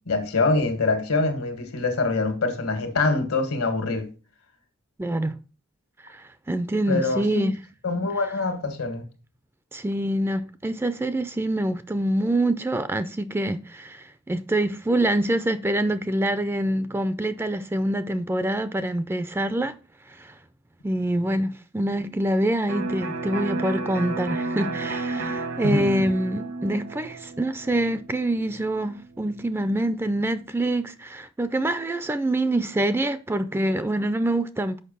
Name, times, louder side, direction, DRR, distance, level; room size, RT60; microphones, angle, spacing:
voice 1, 0.1-4.1 6.9-7.5 7.8-9.0 25.6-25.9, left 3 dB, 85° left, 1.7 m, -24 dB
voice 2, 5.0-5.4 6.0-7.5 9.7-19.7 20.2-20.3 20.8-34.8, right 1 dB, 10° right, 0.3 m, -25 dB
Electric guitar, 22.7-30.3, right 3 dB, 65° right, 1.0 m, -33 dB
6.5 x 5.2 x 5.4 m
head